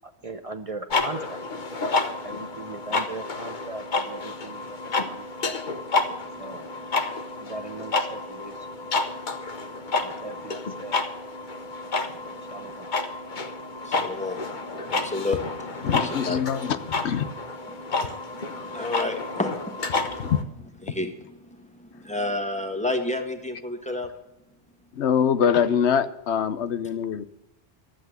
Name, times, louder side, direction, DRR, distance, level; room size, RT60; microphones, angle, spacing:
voice 1, 0.0-1.4 2.2-4.8 5.0-5.5 6.4-6.7 7.4-8.5 10.0-11.0 12.5-12.9, right 3 dB, 35° right, 0.8 m, -39 dB
sound 1, 0.9-20.4, left 3 dB, 45° left, 1.2 m, -30 dB
voice 2, 6.1-6.7 10.2-10.3 12.4-12.8 13.8-15.4 16.0-16.4 17.7-17.8 18.3-20.2 20.9-24.1, left 2 dB, 5° left, 1.7 m, -32 dB
voice 3, 15.8-16.8 17.0-17.3 20.2-20.4 24.9-27.2, left 8 dB, 90° left, 1.1 m, -23 dB
13.5 x 8.2 x 7.8 m
omnidirectional pair, 1.1 m